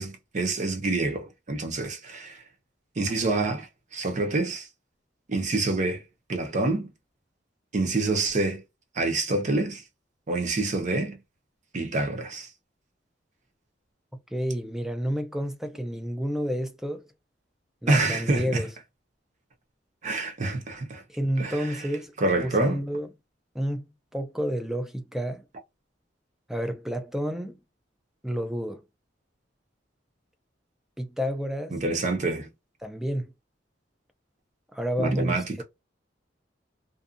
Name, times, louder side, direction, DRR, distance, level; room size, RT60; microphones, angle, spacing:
voice 1, 0.0-2.4 3.0-4.7 5.3-6.0 6.3-6.9 7.7-8.6 8.9-9.8 10.3-11.2 11.7-12.5 17.9-18.6 20.0-21.0 21.4-21.8 22.2-22.8 31.7-32.5 35.0-35.6, right 2 dB, 40° right, 0.7 m, -27 dB
voice 2, 14.3-17.0 17.8-18.7 21.1-22.1 22.4-23.1 23.5-23.9 24.1-25.4 26.5-27.6 28.2-28.8 31.0-31.7 32.8-33.3 34.7-35.6, equal, ahead, 0.4 m, -30 dB
2.6 x 2.3 x 2.5 m
head